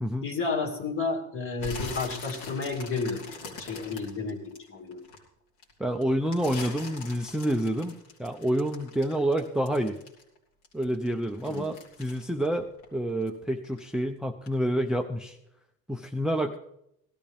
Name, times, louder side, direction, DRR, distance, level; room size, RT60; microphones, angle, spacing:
voice 1, 0.2-5.0 11.5-11.7, left 4 dB, 40° left, 2 dB, 2.4 m, -32 dB
sound 1, 1.6-5.2 5.6-10.4 10.6-13.4 13.6-14.0 14.5-14.6, left 3 dB, 85° left, 3.5 m, -42 dB
voice 2, 5.8-10.0 10.7-15.4 15.9-16.6, right 1 dB, ahead, 4 dB, 0.6 m, -28 dB
17.0 x 13.0 x 3.5 m, 0.77 s
cardioid pair, 120°, 34 cm